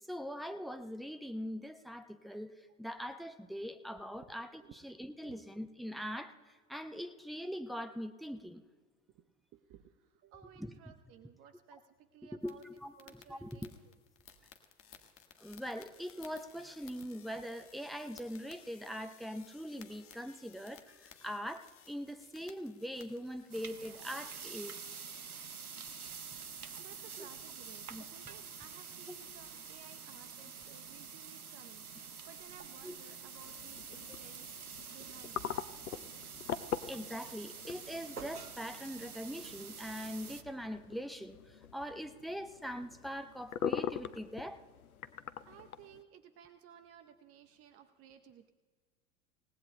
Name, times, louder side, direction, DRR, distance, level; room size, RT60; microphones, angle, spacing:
voice 1, 0.1-2.5 2.8-6.3 6.7-8.6 10.6-10.7 12.4-13.7 15.4-24.8 27.2-27.3 27.9-28.0 32.8-33.0 34.1-34.2 36.9-44.6, equal, ahead, 8 dB, 0.5 m, -42 dB
voice 2, 9.1-12.6 13.0-13.7 26.4-34.5 34.9-35.6 45.5-48.5, right 9 dB, 35° right, 8 dB, 0.8 m, -57 dB
sound 1, 12.4-25.4, left 8 dB, 30° left, 1.5 m, -59 dB
sound 2, 23.5-40.4, right 6 dB, 90° right, 0.7 m, -47 dB
sound 3, 33.4-46.0, left 9 dB, 75° left, 0.7 m, -43 dB
27.5 x 18.0 x 2.2 m, 1.5 s
figure-of-eight pair, 80°, 43 cm